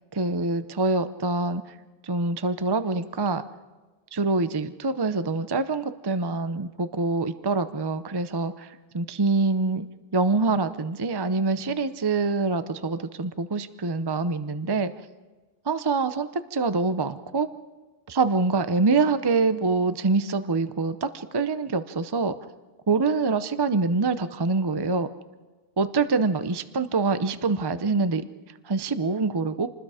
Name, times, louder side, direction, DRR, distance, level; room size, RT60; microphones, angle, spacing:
voice 1, 0.1-1.6 2.0-3.4 4.1-9.9 10.1-14.9 15.7-17.5 18.1-22.3 22.9-25.1 25.8-28.2 28.7-29.7, right 3 dB, 25° right, 11 dB, 0.7 m, -25 dB
28.0 x 20.5 x 5.0 m, 1.3 s
omnidirectional pair, 1.1 m